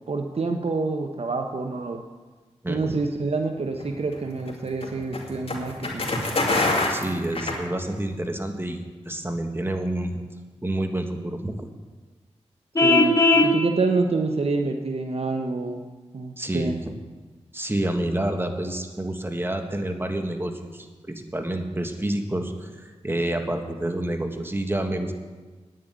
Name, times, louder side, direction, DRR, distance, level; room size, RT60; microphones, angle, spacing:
voice 1, 0.1-2.0 2.7-6.1 12.8-15.8 16.1-16.8, right 3 dB, 60° right, 4 dB, 0.9 m, -27 dB
voice 2, 2.6-3.0 6.9-10.2 10.6-11.7 16.4-16.8 17.5-25.1, right 1 dB, 20° right, 5 dB, 1.6 m, -28 dB
sound 1, 3.7-8.2, left 2 dB, 55° left, 2.6 m, -26 dB
Vehicle horn car horn honking, 12.8-13.5, left 2 dB, 25° left, 1.5 m, -17 dB
9.5 x 7.6 x 9.2 m, 1.3 s
cardioid pair, 55°, 12 cm